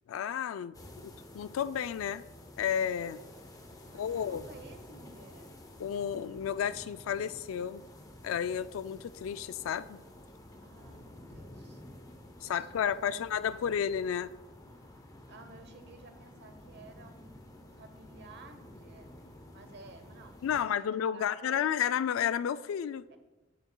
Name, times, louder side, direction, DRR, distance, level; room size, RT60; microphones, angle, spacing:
voice 1, 0.1-0.7 1.0-2.3 2.6-3.2 3.9-4.4 5.8-7.8 8.2-10.0 12.4-14.3 20.4-23.0, left 8 dB, 80° left, 15 dB, 0.3 m, -32 dB
sound 1, 0.7-20.6, left 1 dB, 20° left, 0.6 m, -51 dB
voice 2, 3.8-5.5 10.6-11.8 12.4-13.9 14.7-19.1 19.5-21.6 21.8-21.9 23.1-23.2, right 3 dB, 60° right, 8 dB, 0.8 m, -54 dB
11.0 x 6.8 x 2.2 m, 1.1 s
head